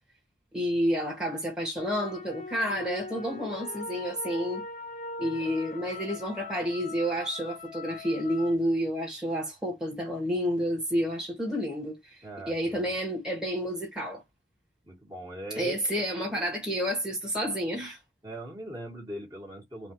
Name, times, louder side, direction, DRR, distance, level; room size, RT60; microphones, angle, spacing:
voice 1, 0.5-4.6 5.2-14.2 15.6-18.0, equal, 5° right, 1.4 m, -30 dB
sound 1, 1.8-8.6, left 3 dB, 40° left, 0.8 m, -41 dB
voice 2, 12.2-12.9 14.8-15.8 16.1-16.4 18.2-19.9, right 1 dB, 20° right, 1.6 m, -40 dB
4.2 x 2.5 x 2.9 m
head